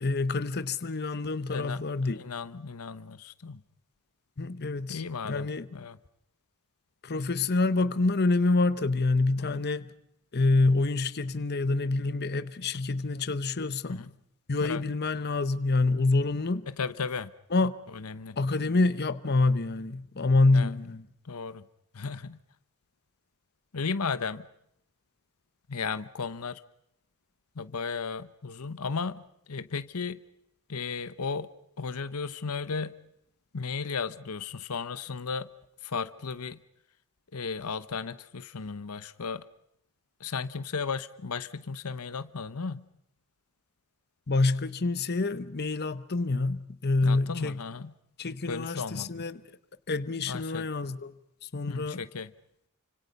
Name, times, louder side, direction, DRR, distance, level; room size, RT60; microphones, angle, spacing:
voice 1, 0.0-2.2 4.4-5.7 7.0-9.9 10.3-14.0 14.5-16.7 17.5-17.7 18.4-21.0 44.3-47.6 48.2-49.4 49.9-51.1 51.4-52.0, left 3 dB, 50° left, 0.9 m, -27 dB
voice 2, 1.5-3.6 4.9-6.0 9.4-9.6 13.9-14.1 14.6-14.8 16.7-17.3 17.9-18.4 20.5-20.7 21.2-21.6 21.9-22.4 23.7-24.5 25.7-26.6 27.5-30.2 30.7-31.5 31.8-32.9 33.5-35.5 35.8-36.6 37.3-39.5 40.2-42.8 47.0-47.9 48.4-49.3 50.3-50.7 51.7-52.3, left 5 dB, 80° left, 0.9 m, -35 dB
29.5 x 25.5 x 5.4 m
head